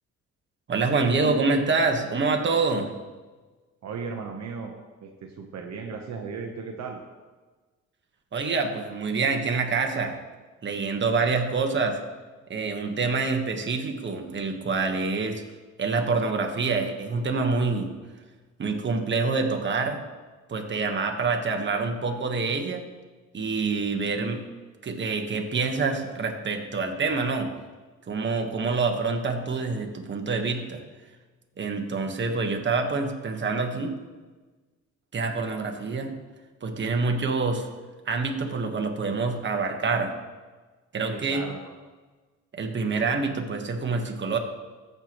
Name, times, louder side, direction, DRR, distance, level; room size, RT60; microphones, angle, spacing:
voice 1, 0.7-2.9 8.3-10.2 10.6-12.0 12.5-15.4 15.8-17.9 18.6-20.0 20.5-22.8 23.3-24.4 24.8-27.5 28.1-30.8 31.6-33.9 35.1-36.1 36.6-37.7 38.1-40.1 40.9-41.4 42.5-44.4, right 4 dB, 40° right, 3 dB, 1.3 m, -26 dB
voice 2, 3.8-4.7 5.0-7.0 32.1-32.2 41.1-41.7, right 5 dB, 60° right, 2 dB, 1.0 m, -36 dB
14.5 x 6.8 x 3.0 m, 1.3 s
cardioid pair, 90°, 30 cm